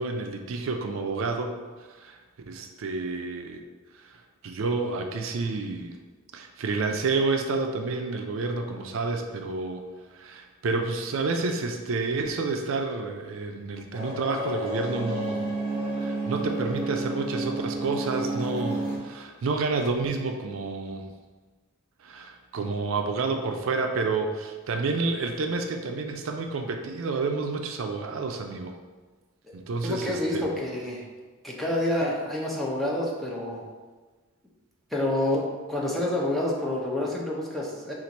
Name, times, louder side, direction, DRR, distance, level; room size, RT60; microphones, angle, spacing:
voice 1, 0.0-1.6 2.0-2.2 2.5-3.6 4.4-5.9 6.3-9.8 10.1-15.4 16.0-21.1 22.0-28.8 29.5-30.5, right 3 dB, 70° right, 4 dB, 0.4 m, -29 dB
sound 1, 13.9-19.0, right 2 dB, 25° right, 1.4 m, -31 dB
voice 2, 29.8-31.0 31.4-33.6 34.9-37.9, left 1 dB, ahead, -4 dB, 0.6 m, -28 dB
4.4 x 2.5 x 4.0 m, 1.3 s
head